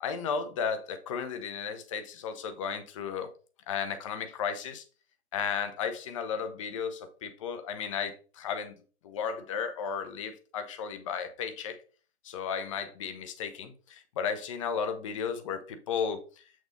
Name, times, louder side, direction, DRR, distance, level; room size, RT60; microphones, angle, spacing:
voice 1, 0.0-3.3 3.7-4.8 5.3-8.7 9.0-11.8 12.2-16.4, left 6 dB, 30° left, 0.8 m, -34 dB
7.9 x 6.1 x 2.7 m
figure-of-eight pair, 125°, 33 cm